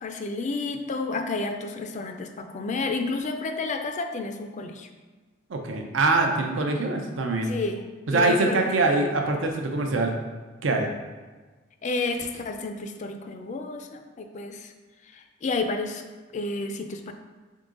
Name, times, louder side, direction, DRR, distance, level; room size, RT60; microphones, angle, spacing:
voice 1, 0.0-4.9 7.4-7.8 8.1-8.7 11.8-14.7 15.1-16.0 16.3-17.1, left 3 dB, 40° left, 6 dB, 0.4 m, -31 dB
voice 2, 5.5-7.5 8.1-10.2 10.6-10.9, right 3 dB, 80° right, 3 dB, 0.5 m, -24 dB
3.8 x 3.7 x 3.7 m, 1.3 s
head